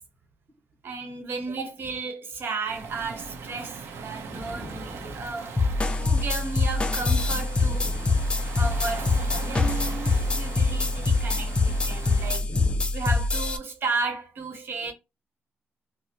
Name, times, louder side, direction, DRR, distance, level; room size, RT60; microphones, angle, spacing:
voice 1, 0.8-5.5 5.9-8.0 8.6-12.4 12.9-14.9, right 4 dB, 60° right, 1.0 m, -34 dB
Waves surf, 2.6-12.4, right 5 dB, 80° right, 0.6 m, -40 dB
voice 2, 4.3-5.3 7.6-8.3 12.4-12.9, left 1 dB, 5° right, 1.8 m, -40 dB
sound 1, 5.6-13.6, left 3 dB, 25° left, 0.5 m, -24 dB
4.3 x 2.0 x 2.8 m
cardioid pair, 95°, 4 cm